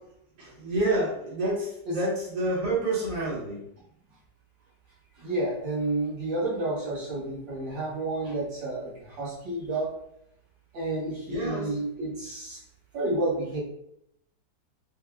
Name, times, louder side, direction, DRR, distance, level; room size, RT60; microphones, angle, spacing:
voice 1, 0.4-3.6 11.3-11.8, right 2 dB, 55° right, -8 dB, 1.8 m, -28 dB
voice 2, 5.2-9.9 10.7-12.6 12.9-13.6, right 2 dB, 75° right, -8 dB, 2.2 m, -30 dB
5.3 x 2.0 x 2.3 m, 0.75 s
omnidirectional pair, 2.0 m